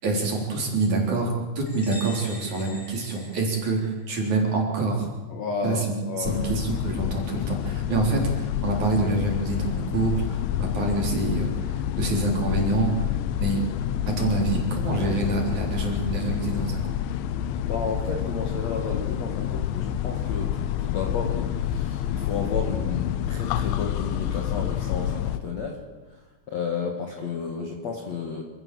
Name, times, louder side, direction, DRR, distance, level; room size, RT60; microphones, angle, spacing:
voice 1, 0.0-5.1 5.6-13.6 14.1-16.8, right 3 dB, 45° right, 0 dB, 4.8 m, -26 dB
sound 1, 1.7-4.2, left 1 dB, 5° left, 4.3 m, -43 dB
voice 2, 5.3-6.5 17.6-25.8 26.5-28.4, left 5 dB, 50° left, 2 dB, 2.3 m, -32 dB
sound 2, 6.3-25.4, left 10 dB, 90° left, 3.2 m, -28 dB
26.5 x 14.5 x 7.8 m, 1.3 s
omnidirectional pair, 5.1 m